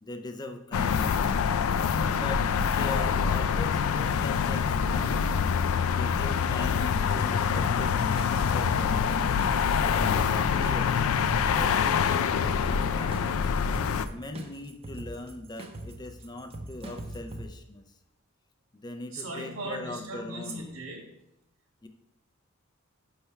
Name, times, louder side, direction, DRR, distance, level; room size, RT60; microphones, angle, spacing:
voice 1, 0.0-1.4 2.1-5.3 5.9-9.2 9.9-11.1 11.5-13.3 14.1-17.8 18.8-20.7 21.8-21.9, left 2 dB, 20° left, 6 dB, 0.4 m, -40 dB
sound 1, 0.7-14.1, left 6 dB, 85° left, 0.3 m, -25 dB
sound 2, 7.5-17.4, right 1 dB, 30° right, 0.6 m, -42 dB
voice 2, 19.1-21.0, right 1 dB, 80° right, 0 dB, 1.6 m, -38 dB
5.7 x 3.3 x 5.6 m, 0.84 s
head